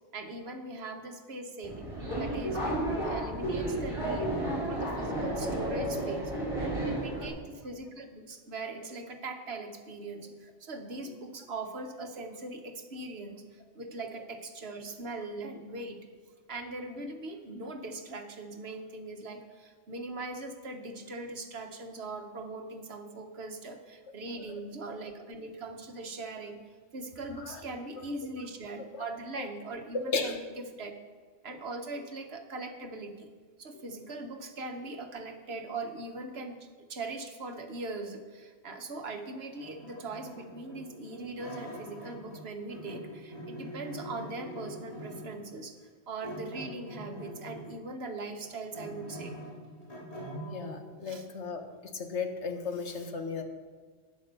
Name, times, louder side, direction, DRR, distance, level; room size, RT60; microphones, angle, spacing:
voice 1, 0.1-4.3 4.7-6.4 6.8-16.0 16.5-26.6 26.9-30.4 30.8-30.9 31.4-33.3 33.6-36.6 36.9-45.8 46.1-49.4 51.0-51.3, right 2 dB, 60° right, 6 dB, 1.4 m, -40 dB
Subway metro underground, 1.6-7.3, right 1 dB, 25° right, 4.3 m, -32 dB
voice 2, 29.9-30.4 50.5-51.6 51.9-53.4, left 4 dB, 70° left, 5 dB, 1.5 m, -35 dB
sound 1, 39.5-42.4 42.7-45.4 46.2-47.8 48.2-50.7, equal, 30° left, 3.6 m, -44 dB
11.0 x 9.4 x 6.8 m, 1.5 s
omnidirectional pair, 1.2 m